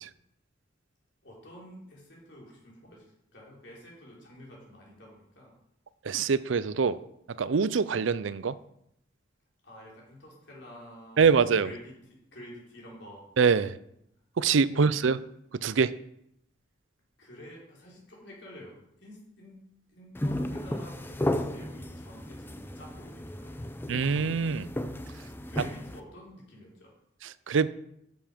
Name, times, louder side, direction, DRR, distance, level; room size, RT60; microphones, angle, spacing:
voice 1, 1.2-5.5 9.6-13.2 14.7-15.2 17.2-19.6 19.9-23.8 25.5-26.9, equal, 65° left, -3 dB, 3.9 m, -49 dB
voice 2, 6.1-7.0 7.4-8.6 11.2-11.7 13.4-13.8 14.4-15.2 15.6-15.9 23.9-24.7 27.5-27.7, right 5 dB, 90° right, 16 dB, 0.5 m, -24 dB
sound 1, 20.1-26.0, left 1 dB, 10° left, 0.5 m, -34 dB
11.5 x 7.1 x 5.2 m, 0.77 s
head